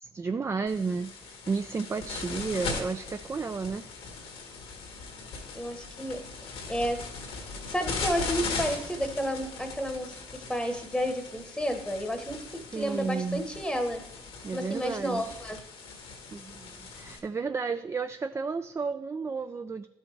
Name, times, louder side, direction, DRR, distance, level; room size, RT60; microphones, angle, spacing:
voice 1, 0.0-3.9 12.7-13.5 14.4-15.4 16.3-19.9, right 4 dB, 30° right, 9 dB, 0.3 m, -32 dB
sound 1, 0.7-17.2, left 4 dB, 90° left, 1.6 m, -39 dB
voice 2, 5.5-7.0 7.7-14.0 14.5-15.6, equal, 5° left, 5 dB, 1.0 m, -31 dB
12.5 x 5.4 x 3.2 m, 0.96 s
supercardioid pair, 70°, 10 cm